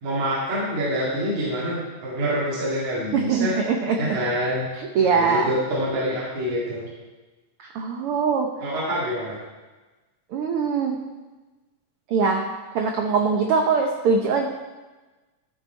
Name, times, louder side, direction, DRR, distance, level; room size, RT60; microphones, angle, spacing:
voice 1, 0.0-3.6 4.0-4.7 5.1-6.9 8.6-9.4, equal, 65° right, -7 dB, 3.4 m, -26 dB
voice 2, 3.1-4.0 4.8-5.5 7.6-8.5 10.3-11.0 12.1-12.4 12.7-14.5, right 5 dB, 90° right, 2 dB, 1.2 m, -22 dB
13.5 x 7.3 x 4.5 m, 1.2 s
omnidirectional pair, 3.7 m